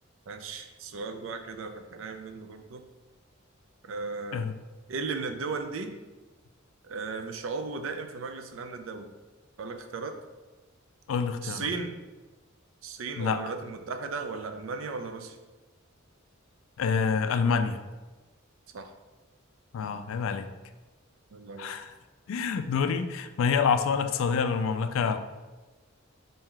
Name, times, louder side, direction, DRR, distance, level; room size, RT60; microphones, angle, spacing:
voice 1, 0.3-2.8 3.8-4.5 4.9-5.9 6.8-9.1 9.6-10.1 11.4-12.0 12.8-15.4 18.7-18.9 21.3-21.8, right 4 dB, 70° right, 6 dB, 0.4 m, -36 dB
voice 2, 11.1-11.7 13.2-13.4 16.8-17.8 19.7-20.5 21.6-21.9 22.3-25.2, left 6 dB, 70° left, 10 dB, 0.3 m, -27 dB
4.4 x 2.7 x 3.7 m, 1.2 s
head